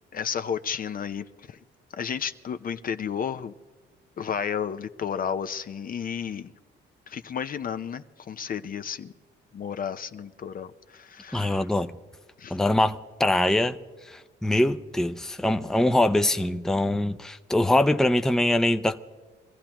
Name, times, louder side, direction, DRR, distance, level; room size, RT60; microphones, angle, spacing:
voice 1, 0.1-1.6 2.0-3.5 4.2-6.5 7.1-9.1 9.5-11.7 12.4-12.6, left 7 dB, 45° left, 0.6 m, -32 dB
voice 2, 11.3-11.9 12.5-13.8 14.1-19.0, left 1 dB, ahead, 0.6 m, -23 dB
24.0 x 15.0 x 3.0 m
cardioid pair, 90°, 20 cm